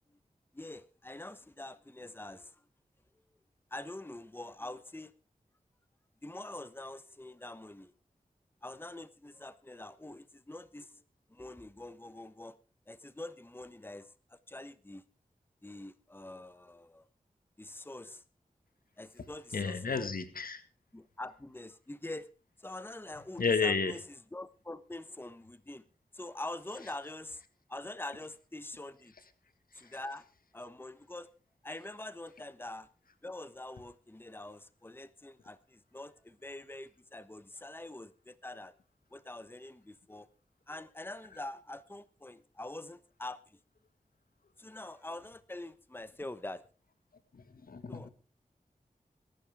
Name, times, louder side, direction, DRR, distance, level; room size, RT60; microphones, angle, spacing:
voice 1, 0.5-2.6 3.7-5.1 6.2-7.9 8.6-11.0 11.3-12.5 12.9-15.0 15.6-17.1 17.6-18.2 19.0-20.1 20.9-22.3 22.6-24.0 24.3-25.8 26.1-27.4 27.7-29.1 29.7-30.3 30.5-31.3 31.6-32.9 33.2-38.7 39.1-40.3 40.7-43.6 44.6-46.6 47.9-48.1, left 2 dB, 15° left, 1.0 m, -45 dB
voice 2, 19.5-20.6 23.4-23.9 47.3-48.1, left 4 dB, 80° left, 1.8 m, -31 dB
22.0 x 11.5 x 3.6 m
wide cardioid pair, 55°, 15 cm